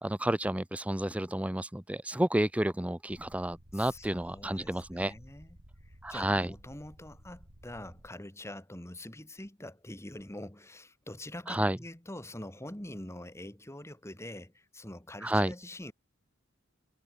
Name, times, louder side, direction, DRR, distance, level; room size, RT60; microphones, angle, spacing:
voice 1, 0.0-5.1 6.0-6.5 11.5-11.8 15.2-15.5, right 1 dB, 5° right, 0.6 m, -30 dB
sound 1, 3.1-8.1, equal, 60° right, 4.9 m, -55 dB
voice 2, 3.7-5.6 5.8-15.9, left 1 dB, 15° left, 2.3 m, -45 dB
head